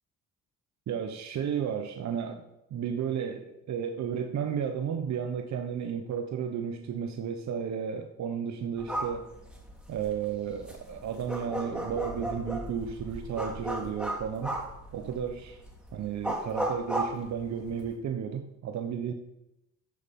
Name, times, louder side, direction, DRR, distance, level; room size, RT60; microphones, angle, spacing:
voice 1, 0.9-2.4 2.7-9.3 9.9-14.6 14.9-15.6 15.9-19.1, right 7 dB, 65° right, 6 dB, 1.2 m, -33 dB
sound 1, 8.8-17.9, right 1 dB, 5° right, 4.2 m, -36 dB
14.5 x 6.6 x 5.5 m, 0.84 s
cardioid pair, 90°, 30 cm